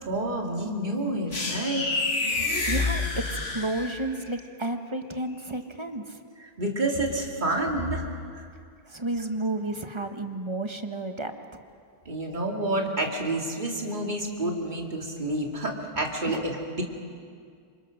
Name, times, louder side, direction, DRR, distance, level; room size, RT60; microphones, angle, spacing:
voice 1, 0.0-1.8 6.4-8.5 12.1-16.8, right 1 dB, 45° right, 0 dB, 2.7 m, -29 dB
sound 1, 1.3-4.2, left 3 dB, 75° left, 2.3 m, -28 dB
voice 2, 2.7-6.2 8.8-11.3 16.3-16.4, right 2 dB, 25° right, 6 dB, 1.3 m, -32 dB
27.5 x 25.0 x 6.5 m, 2.2 s
omnidirectional pair, 1.1 m